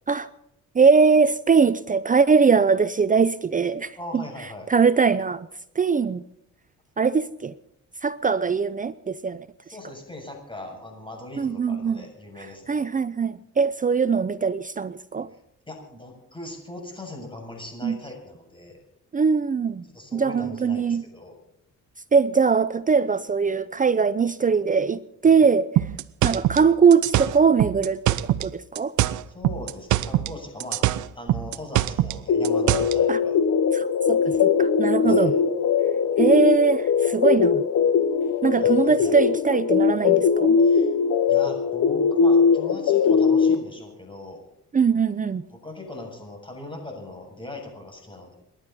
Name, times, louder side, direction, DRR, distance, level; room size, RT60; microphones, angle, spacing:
voice 1, 0.7-4.2 4.7-5.5 5.8-6.2 7.0-7.5 8.0-9.5 11.4-12.0 12.7-15.3 17.8-18.0 19.1-19.9 20.1-21.0 22.1-25.8 26.2-28.9 33.1-33.2 33.7-35.3 36.2-37.6 38.4-40.6 44.7-45.4, right 5 dB, 25° right, 0.6 m, -21 dB
voice 2, 4.0-4.7 9.6-12.9 15.3-15.4 15.7-18.8 19.9-21.4 29.3-33.4 35.0-35.3 38.6-39.2 40.6-40.9 41.3-44.4 45.5-48.3, left 1 dB, 15° left, 7.3 m, -40 dB
sound 1, 25.8-28.5 28.8-30.3 30.6-33.0, right 14 dB, 75° right, 0.7 m, -23 dB
sound 2, 32.3-43.6, left 6 dB, 60° left, 1.3 m, -20 dB
28.0 x 11.5 x 4.3 m
cardioid pair, 90°, 30 cm